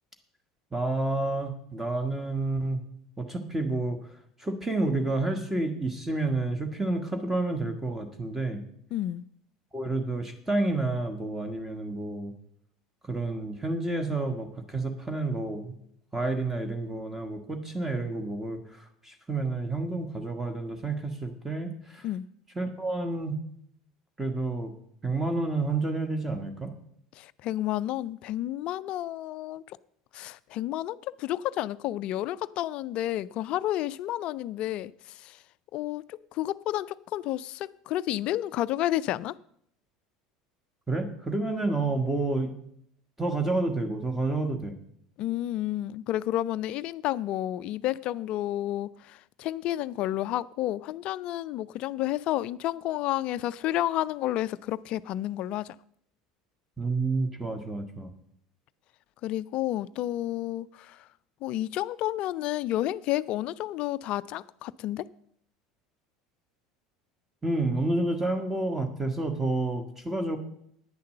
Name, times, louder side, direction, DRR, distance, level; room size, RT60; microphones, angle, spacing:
voice 1, 0.7-2.8 3.2-4.1 4.4-8.6 9.7-12.3 13.1-15.8 16.1-22.1 22.5-23.4 24.2-24.7 25.0-26.7 40.9-42.5 43.2-44.8 56.8-58.1 67.4-70.4, right 2 dB, 10° right, 1.5 m, -29 dB
voice 2, 8.9-9.3 22.0-22.3 27.2-29.8 30.1-35.4 35.7-39.4 45.2-55.8 59.2-61.0 61.4-65.1, left 14 dB, 45° left, 0.4 m, -31 dB
10.0 x 9.7 x 6.5 m
figure-of-eight pair, 70°, 2 cm